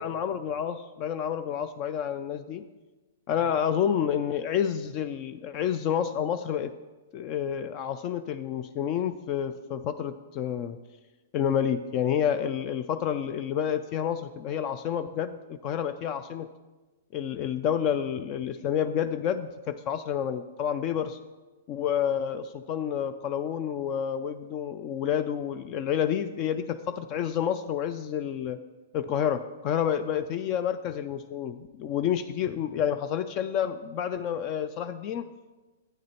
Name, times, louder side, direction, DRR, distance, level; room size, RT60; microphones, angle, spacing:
voice 1, 0.0-2.6 3.3-6.7 7.1-10.8 11.3-16.5 17.1-21.2 21.7-28.6 28.9-35.3, left 9 dB, 35° left, 10 dB, 0.3 m, -29 dB
9.2 x 8.7 x 3.0 m, 1.2 s
hypercardioid pair, 150°, 0 cm